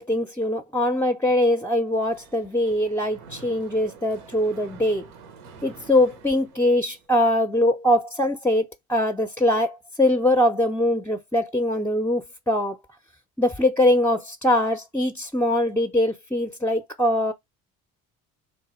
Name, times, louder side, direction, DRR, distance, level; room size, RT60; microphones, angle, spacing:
voice 1, 0.0-5.1 5.6-12.8 13.4-17.3, left 1 dB, 5° left, 0.5 m, -22 dB
Mechanisms, 1.9-7.1, right 6 dB, 85° right, 0.9 m, -47 dB
3.3 x 2.2 x 4.2 m
hypercardioid pair, 60°, 43 cm